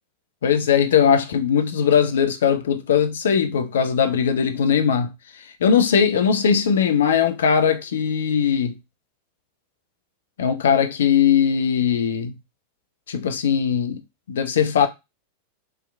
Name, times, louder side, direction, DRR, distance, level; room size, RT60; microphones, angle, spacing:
voice 1, 0.4-8.7 10.4-12.3 13.1-14.0 14.3-14.9, left 7 dB, 65° left, 0.4 m, -20 dB
2.7 x 2.3 x 2.2 m
figure-of-eight pair, 90°, 0 cm